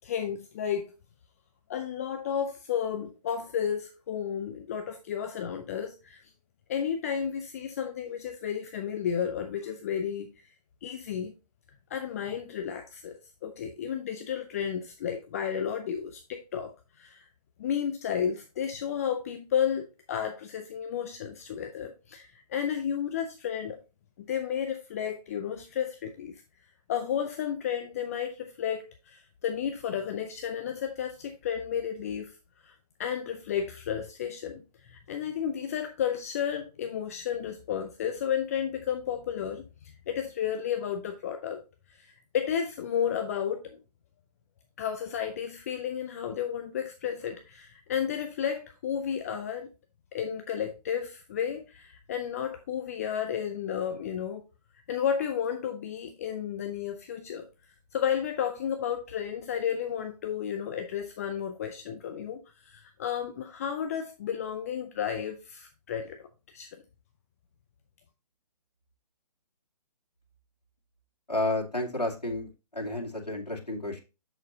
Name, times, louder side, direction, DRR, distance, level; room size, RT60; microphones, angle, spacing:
voice 1, 0.0-0.9 1.7-6.2 6.7-10.3 10.8-11.3 11.9-17.3 17.6-23.8 24.2-26.3 26.9-32.3 32.6-41.6 41.9-43.8 44.8-49.7 50.1-54.4 54.9-57.5 57.9-66.8, left 8 dB, 25° left, 0.5 m, -32 dB
voice 2, 71.3-74.0, left 2 dB, 85° left, 2.3 m, -31 dB
7.9 x 6.4 x 2.7 m
figure-of-eight pair, 135°, 20 cm